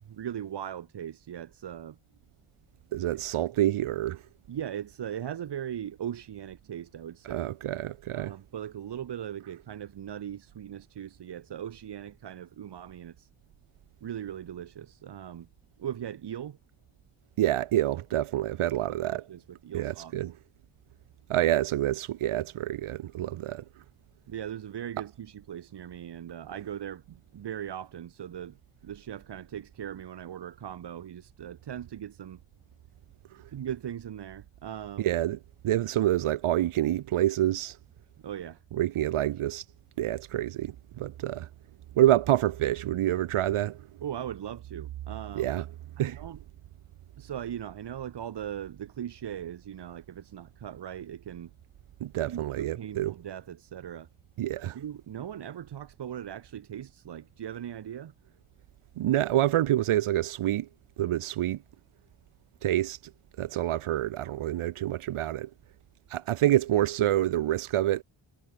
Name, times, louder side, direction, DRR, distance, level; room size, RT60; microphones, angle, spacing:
voice 1, 0.1-2.0 4.5-7.5 8.1-13.3 14.0-15.5 15.8-16.6 18.9-20.1 24.3-27.0 27.3-28.6 28.8-32.4 33.5-35.1 38.2-38.6 44.0-45.5 46.0-46.4 47.2-51.5 52.3-54.1 54.6-58.1, right 10 dB, 55° right, 0.9 m, -39 dB
voice 2, 2.9-4.2 7.2-8.4 17.4-19.2 19.7-20.3 21.3-23.6 33.3-33.4 35.0-35.4 35.6-37.8 38.7-39.6 40.0-41.5 42.0-43.8 45.3-45.7 46.0-46.2 52.0-53.2 54.4-54.8 59.0-60.7 61.0-61.6 62.6-63.0 63.4-65.5 66.1-68.0, right 13 dB, 90° right, 0.8 m, -27 dB
cardioid pair, 85°, 49 cm